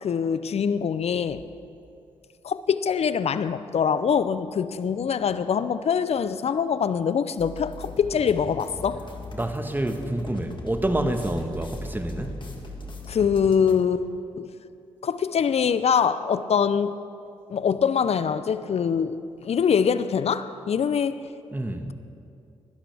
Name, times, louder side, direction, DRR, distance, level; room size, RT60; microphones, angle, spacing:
voice 1, 0.0-1.4 2.4-9.0 13.1-14.1 14.3-14.5 15.0-16.9 17.5-19.2 19.4-21.2, left 7 dB, 55° left, 0.6 m, -24 dB
sound 1, 7.4-13.7, left 2 dB, 40° left, 2.0 m, -39 dB
voice 2, 9.3-12.5 21.5-21.9, right 1 dB, 15° right, 1.3 m, -28 dB
19.5 x 12.0 x 3.5 m
hypercardioid pair, 40°, 13 cm